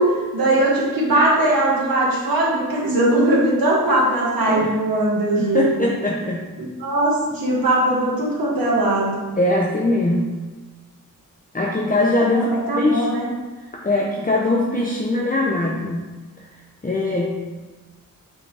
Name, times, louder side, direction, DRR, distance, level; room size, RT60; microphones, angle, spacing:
voice 1, 0.0-5.7 6.6-9.1 12.3-13.3, right 1 dB, 90° right, -5 dB, 1.5 m, -20 dB
voice 2, 5.4-6.4 7.4-7.6 9.4-10.3 11.5-13.1 13.6-16.1 16.8-17.4, left 2 dB, 25° left, -2 dB, 0.8 m, -21 dB
8.2 x 4.8 x 3.5 m, 1.3 s
wide cardioid pair, 75°, 34 cm